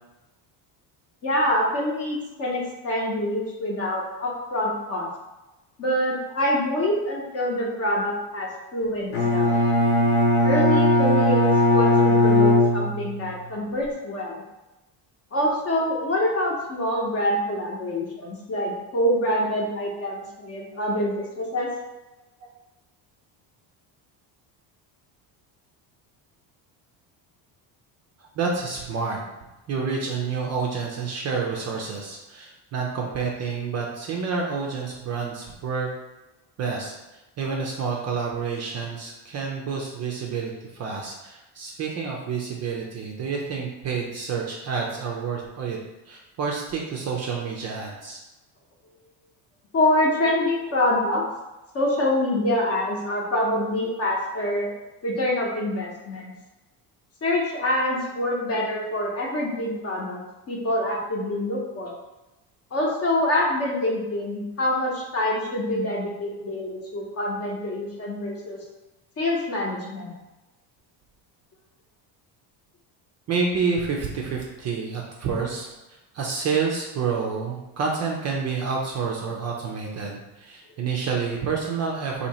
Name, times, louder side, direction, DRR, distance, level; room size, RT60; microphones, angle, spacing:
voice 1, 1.2-5.1 5.8-9.5 10.4-14.4 15.3-21.7 49.7-51.2 51.7-54.7 55.0-56.3 57.2-60.2 60.5-61.9 62.7-68.6 69.2-70.1, left 1 dB, 30° left, -2 dB, 0.8 m, -25 dB
Bowed string instrument, 9.1-13.3, left 1 dB, 70° left, 1.0 m, -19 dB
voice 2, 28.4-29.2 29.7-35.9 36.6-45.8 46.1-48.2 73.3-75.7 76.1-82.3, right 5 dB, 35° right, -1 dB, 0.4 m, -29 dB
2.8 x 2.8 x 4.1 m, 1.0 s
cardioid pair, 155°, 45 cm